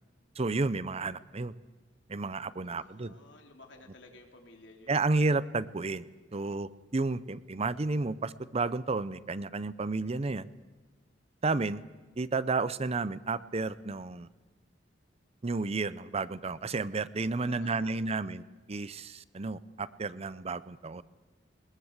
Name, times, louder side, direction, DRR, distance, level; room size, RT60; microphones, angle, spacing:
voice 1, 0.4-1.5 2.1-3.1 4.9-6.0 6.3-10.5 11.4-11.8 12.2-14.3 15.4-21.0, right 3 dB, 35° right, 16 dB, 0.6 m, -31 dB
voice 2, 2.6-5.2 17.5-18.2, left 2 dB, 70° left, 3 dB, 3.4 m, -54 dB
21.0 x 20.5 x 8.1 m, 1.3 s
head